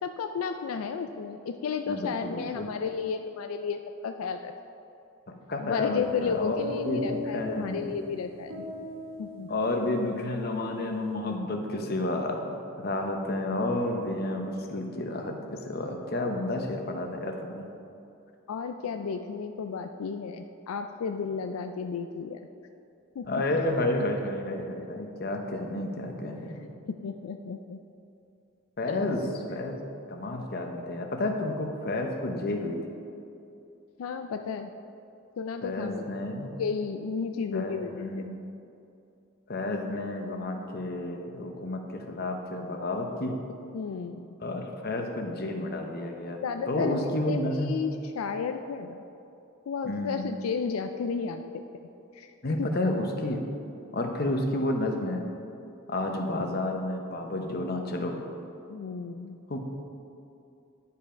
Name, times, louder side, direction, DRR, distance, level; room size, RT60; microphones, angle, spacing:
voice 1, 0.0-4.5 5.6-8.6 9.2-9.5 18.5-22.4 23.2-23.3 26.9-27.8 28.8-29.0 34.0-34.7 35.4-36.1 36.6-38.3 43.7-44.3 46.4-49.0 49.7-51.6 52.1-52.3 52.6-52.7 58.7-59.4, left 5 dB, 85° left, 7 dB, 0.4 m, -33 dB
voice 2, 1.9-2.7 5.3-6.6 6.8-7.8 9.5-17.6 23.3-26.7 28.8-29.8 30.1-32.8 35.6-36.5 37.5-38.4 39.5-43.4 44.4-47.7 49.8-50.2 52.4-53.4 53.9-55.2 55.9-58.2 59.5-59.6, left 1 dB, 45° left, 4 dB, 0.9 m, -31 dB
sound 1, 6.0-10.4, left 2 dB, 70° right, 1.0 m, -39 dB
10.5 x 5.6 x 5.0 m, 2.7 s
head